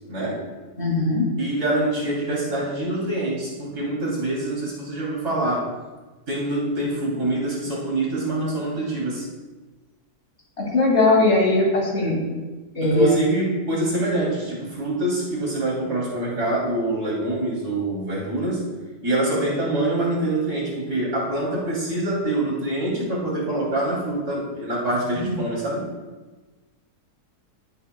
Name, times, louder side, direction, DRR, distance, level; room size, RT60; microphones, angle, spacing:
voice 1, 0.1-0.4 1.4-5.7 6.3-9.3 12.8-18.6 19.0-25.8, right 1 dB, 75° right, -5 dB, 3.6 m, -25 dB
voice 2, 0.8-1.3 10.6-12.2 12.7-13.1 25.1-25.4, left 2 dB, 45° left, -2 dB, 2.6 m, -20 dB
19.0 x 8.2 x 2.3 m, 1.2 s
omnidirectional pair, 1.7 m